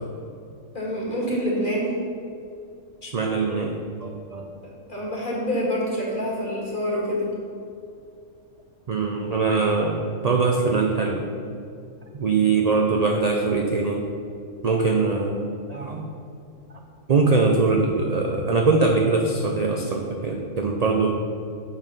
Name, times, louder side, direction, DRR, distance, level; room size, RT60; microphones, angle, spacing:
voice 1, 0.7-1.9 4.6-7.3, equal, 40° left, -4 dB, 2.0 m, -26 dB
voice 2, 3.0-4.5 8.9-11.3 12.1-14.0 14.6-16.1 17.1-21.2, right 4 dB, 50° right, 2 dB, 0.5 m, -22 dB
7.1 x 5.7 x 5.4 m, 2.4 s
omnidirectional pair, 1.3 m